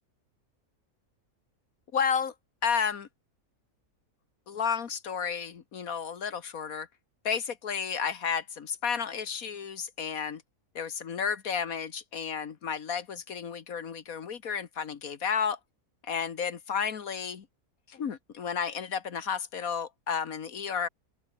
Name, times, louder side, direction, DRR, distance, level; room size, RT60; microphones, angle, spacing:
voice 1, 1.9-2.3 2.6-3.1 4.5-6.9 7.3-10.4 10.8-15.6 16.0-17.5 17.9-20.9, left 7 dB, 75° left, 1.8 m, -32 dB
open air
omnidirectional pair, 1.5 m